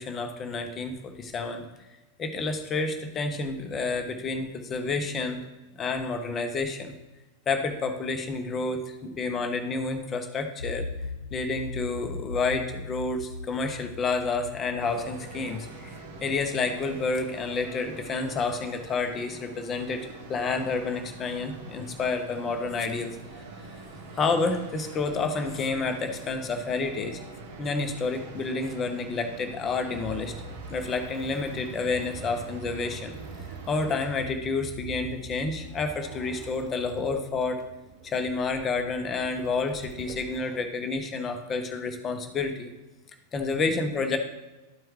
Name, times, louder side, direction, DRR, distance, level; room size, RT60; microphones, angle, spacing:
voice 1, 0.0-1.7 2.2-5.4 5.8-6.9 7.5-10.9 11.3-23.2 24.2-27.2 27.6-30.3 30.7-33.2 33.7-37.6 38.0-42.7 43.3-44.2, left 3 dB, 25° left, 5 dB, 0.9 m, -29 dB
sound 1, 10.6-16.4, left 3 dB, 75° left, 0.3 m, -39 dB
sound 2, 14.8-34.2, right 3 dB, 60° right, 1.0 m, -44 dB
sound 3, 29.9-40.6, right 4 dB, 35° right, 0.7 m, -45 dB
12.5 x 4.5 x 3.2 m, 1.1 s
figure-of-eight pair, 90°, 0 cm